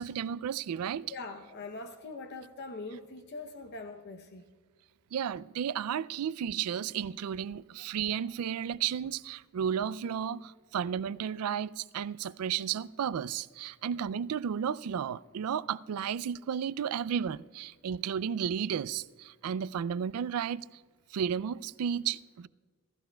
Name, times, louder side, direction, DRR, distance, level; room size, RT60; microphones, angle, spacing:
voice 1, 0.0-1.1 5.1-20.7 21.1-22.5, right 8 dB, 85° right, 0.3 m, -33 dB
voice 2, 1.1-4.4, left 3 dB, 50° left, 0.7 m, -42 dB
27.0 x 14.5 x 2.2 m
head